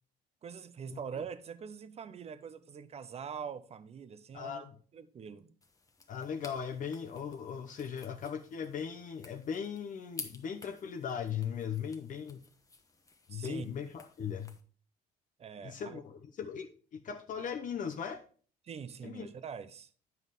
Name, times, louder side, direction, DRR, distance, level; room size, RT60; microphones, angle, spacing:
voice 1, 0.4-4.6 4.9-5.5 13.3-13.7 15.4-16.0 18.6-19.9, right 7 dB, 40° right, 0.8 m, -44 dB
voice 2, 4.3-4.8 6.1-12.4 13.3-14.6 15.6-18.2 19.0-19.3, left 7 dB, 50° left, 0.9 m, -38 dB
sound 1, 5.6-14.6, left 3 dB, 20° left, 1.0 m, -52 dB
9.3 x 5.4 x 4.0 m
cardioid pair, 110°, 17 cm